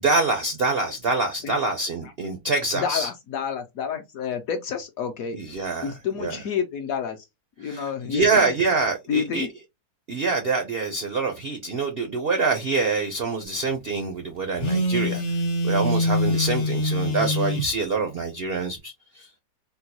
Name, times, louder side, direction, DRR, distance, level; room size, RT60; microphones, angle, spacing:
voice 1, 0.0-3.1 5.3-6.4 7.6-9.5 10.1-19.4, right 3 dB, 75° right, 0.5 m, -25 dB
voice 2, 2.7-5.4 5.8-7.2 7.6-8.2 9.1-9.5, left 7 dB, 70° left, 0.9 m, -29 dB
Telephone, 14.6-17.7, left 1 dB, 90° left, 0.3 m, -24 dB
3.7 x 2.2 x 2.8 m
omnidirectional pair, 1.9 m